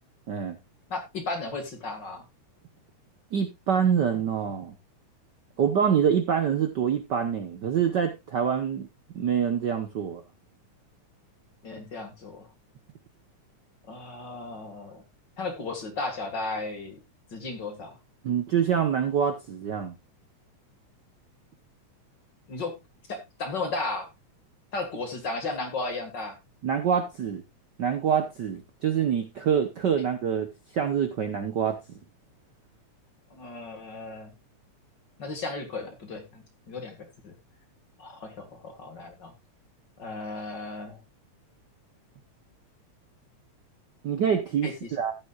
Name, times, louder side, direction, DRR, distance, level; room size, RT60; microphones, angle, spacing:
voice 1, 0.9-2.2 11.6-12.5 13.9-15.0 15.4-17.0 17.3-18.0 22.5-22.8 23.1-24.1 24.7-26.4 33.3-34.3 35.2-37.4 38.0-39.3 40.0-41.0 44.6-44.9, left 3 dB, 40° left, 5 dB, 2.3 m, -35 dB
voice 2, 3.3-4.7 5.6-8.9 9.1-10.2 18.2-19.9 26.6-27.4 27.8-31.8 44.0-45.1, right 8 dB, 85° right, 7 dB, 0.9 m, -26 dB
14.5 x 9.1 x 2.4 m, 0.21 s
omnidirectional pair, 3.4 m